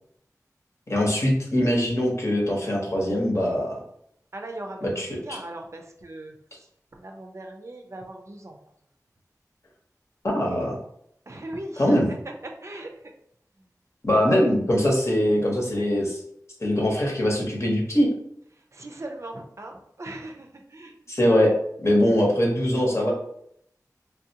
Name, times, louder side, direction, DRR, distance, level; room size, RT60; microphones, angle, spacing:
voice 1, 0.9-3.8 4.8-5.4 10.2-10.7 11.8-12.1 14.0-16.2 16.6-18.1 21.1-21.5 21.8-23.1, left 1 dB, 45° left, -2 dB, 1.0 m, -22 dB
voice 2, 4.3-6.3 7.0-8.5 11.3-12.0 12.6-12.9 14.2-14.5 18.7-21.0, right 1 dB, 50° right, 3 dB, 0.4 m, -39 dB
3.3 x 2.4 x 2.8 m, 0.71 s
wide cardioid pair, 65°, 6 cm